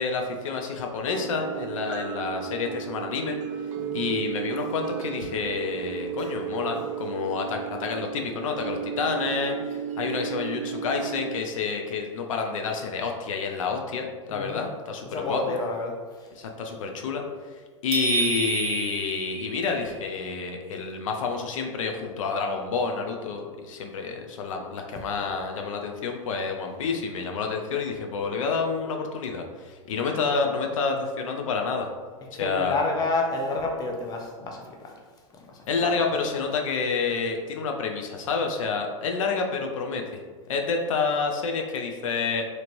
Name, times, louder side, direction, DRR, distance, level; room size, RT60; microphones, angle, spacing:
voice 1, 0.0-3.4 3.9-15.4 16.4-17.2 17.8-31.9 32.3-32.8 35.7-40.0 40.5-42.4, left 5 dB, 80° left, 3 dB, 0.5 m, -29 dB
sound 1, 1.1-11.4, right 9 dB, 75° right, 0.4 m, -34 dB
voice 2, 14.3-14.6 15.1-15.9 32.4-34.9 35.5-35.6, left 2 dB, 25° left, 1 dB, 0.5 m, -29 dB
sound 2, 17.9-20.1, right 5 dB, 35° right, 0.9 m, -29 dB
2.9 x 2.8 x 2.5 m, 1.5 s
hypercardioid pair, 110°, 17 cm